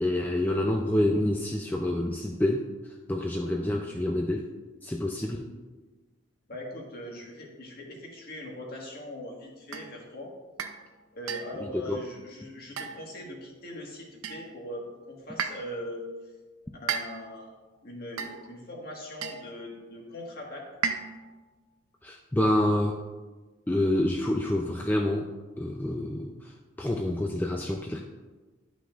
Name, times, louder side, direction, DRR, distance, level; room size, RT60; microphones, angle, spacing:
voice 1, 0.0-2.7 3.1-4.5 4.8-5.5 11.9-12.0 22.0-23.0 23.7-25.3 25.6-26.3 26.8-28.0, left 1 dB, 10° left, 1 dB, 0.3 m, -27 dB
voice 2, 6.5-10.3 11.1-16.0 16.8-17.5 17.8-20.6, left 1 dB, 45° left, -1 dB, 1.6 m, -40 dB
sound 1, 9.7-10.0 10.6-10.8 11.3-11.6 12.8-13.2 14.2-14.6 15.4-15.8 16.9-17.4 18.2-18.6 19.2-19.5 20.8-21.3, right 6 dB, 85° right, 0.6 m, -34 dB
12.0 x 5.8 x 2.4 m, 1.3 s
head